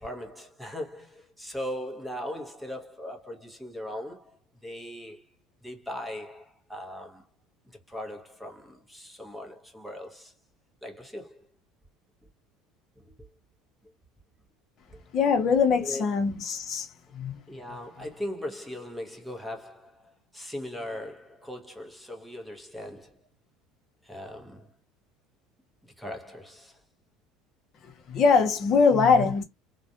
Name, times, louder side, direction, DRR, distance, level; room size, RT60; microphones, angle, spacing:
voice 1, 0.0-5.3 5.6-7.2 7.7-10.3 10.8-11.5 13.0-13.3 14.9-15.0 15.8-16.1 17.5-23.2 24.0-24.7 25.8-26.8, left 1 dB, ahead, 0.7 m, -39 dB
voice 2, 15.1-16.9 17.1-17.4 27.8-29.4, left 5 dB, 45° left, 0.8 m, -22 dB
2.4 x 2.1 x 2.7 m
supercardioid pair, 125°, 0 cm